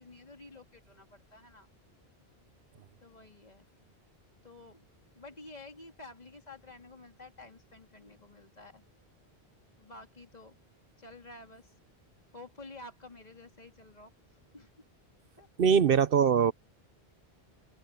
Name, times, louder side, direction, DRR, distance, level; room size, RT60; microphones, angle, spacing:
voice 1, 0.0-1.7 3.0-3.7 4.4-4.9 5.1-8.8 9.8-10.5 11.0-11.7 12.3-14.1 14.5-14.7 15.4-15.8, left 2 dB, 40° left, 2.9 m, -51 dB
voice 2, 15.6-16.5, right 7 dB, 65° right, 0.9 m, -22 dB
open air
omnidirectional pair, 1.1 m